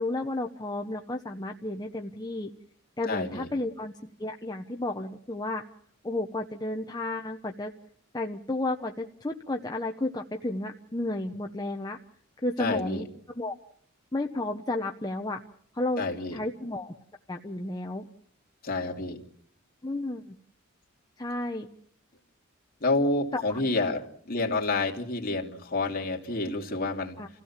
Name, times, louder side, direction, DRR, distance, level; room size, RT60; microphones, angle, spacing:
voice 1, 0.0-2.5 3.0-3.9 4.2-5.6 6.0-7.7 8.1-12.0 12.4-13.5 14.1-15.4 15.7-16.0 16.3-16.9 17.3-18.1 19.8-20.4 21.2-21.7 23.3-23.4 27.2-27.3, left 2 dB, 20° left, 3 dB, 0.9 m, -32 dB
voice 2, 3.1-3.5 12.6-13.0 16.0-16.4 18.6-19.2 22.8-27.2, left 3 dB, 45° left, 1 dB, 2.9 m, -29 dB
28.5 x 16.0 x 7.3 m, 0.66 s
head